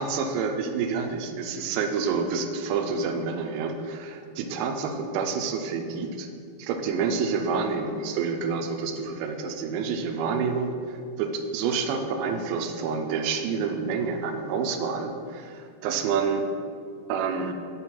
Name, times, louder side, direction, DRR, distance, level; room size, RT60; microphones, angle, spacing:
voice 1, 0.0-6.3 6.6-16.5 17.1-17.5, right 5 dB, 90° right, 5 dB, 3.4 m, -28 dB
9.1 x 3.9 x 5.9 m, 2.4 s
omnidirectional pair, 6.0 m